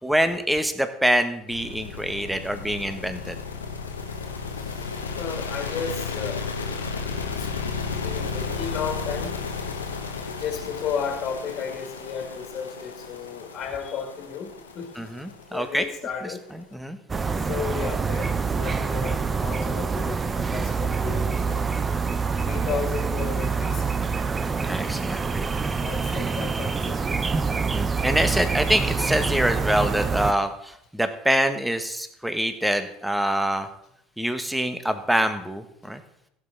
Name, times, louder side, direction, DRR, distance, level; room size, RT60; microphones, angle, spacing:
voice 1, 0.0-3.4 14.9-15.9 16.2-17.0 24.6-25.5 27.7-33.7 34.2-36.0, right 1 dB, 5° right, 9 dB, 1.4 m, -25 dB
sound 1, 1.5-16.6, left 5 dB, 90° left, 1.1 m, -33 dB
voice 2, 5.2-6.5 7.3-7.5 8.0-9.4 10.4-15.1 15.5-16.4 17.5-21.7 22.4-24.0 25.7-27.0 29.2-29.3, left 6 dB, 45° left, 4 dB, 2.2 m, -33 dB
sound 2, 17.1-30.3, right 5 dB, 25° right, 0.8 m, -26 dB
16.0 x 7.1 x 4.1 m, 0.74 s
hypercardioid pair, 70°, 0 cm